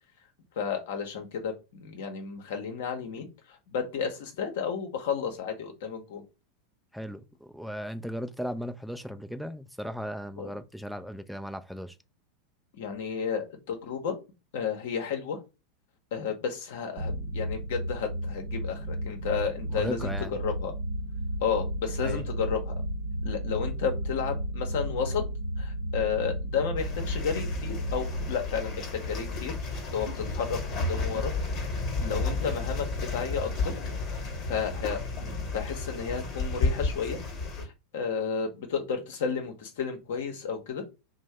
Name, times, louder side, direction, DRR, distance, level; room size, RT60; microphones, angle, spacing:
voice 1, 0.6-6.2 10.4-10.5 12.7-14.2 14.5-15.4 16.1-20.1 20.4-20.7 21.4-22.7 23.2-25.2 25.6-29.6 29.9-30.6 30.9-31.3 31.7-33.7 34.1-34.2 34.5-37.2 37.6-40.8, left 6 dB, 65° left, 0.8 m, -32 dB
voice 2, 6.9-12.0 19.7-20.3 22.0-22.2, equal, ahead, 0.3 m, -36 dB
sound 1, 17.0-29.8, equal, 65° right, 0.6 m, -34 dB
sound 2, 26.8-37.6, left 3 dB, 40° left, 1.0 m, -32 dB
2.6 x 2.1 x 3.2 m
hypercardioid pair, 90°, 0 cm